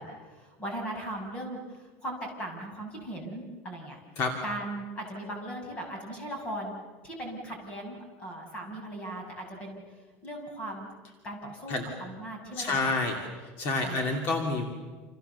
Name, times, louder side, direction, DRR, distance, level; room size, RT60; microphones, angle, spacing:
voice 1, 0.0-4.0 4.4-10.9 11.2-12.9 13.8-14.4, right 1 dB, 20° left, 2 dB, 6.2 m, -39 dB
voice 2, 12.6-14.6, left 3 dB, 40° left, 3 dB, 2.7 m, -29 dB
28.5 x 28.0 x 7.0 m, 1.4 s
cardioid pair, 175°, 6 cm